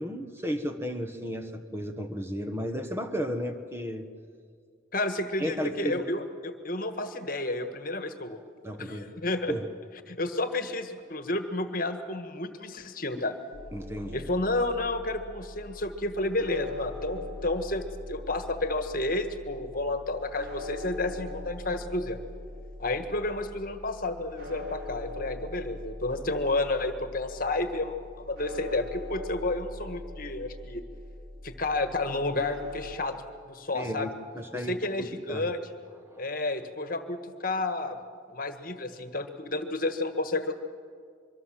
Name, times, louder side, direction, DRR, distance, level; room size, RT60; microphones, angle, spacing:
voice 1, 0.0-4.1 5.4-6.0 8.6-9.6 13.7-14.3 33.7-35.5 36.0-36.3, equal, 15° right, 7 dB, 1.2 m, -34 dB
voice 2, 4.9-8.4 8.8-9.5 10.1-13.3 14.1-22.2 22.8-30.8 31.4-33.2 33.5-34.1 34.5-35.6 36.2-38.0 38.3-40.5, left 2 dB, 45° left, 8 dB, 1.5 m, -31 dB
sound 1, 13.5-33.0, left 2 dB, 50° right, 3.6 m, -42 dB
25.0 x 23.5 x 7.5 m, 2.1 s
head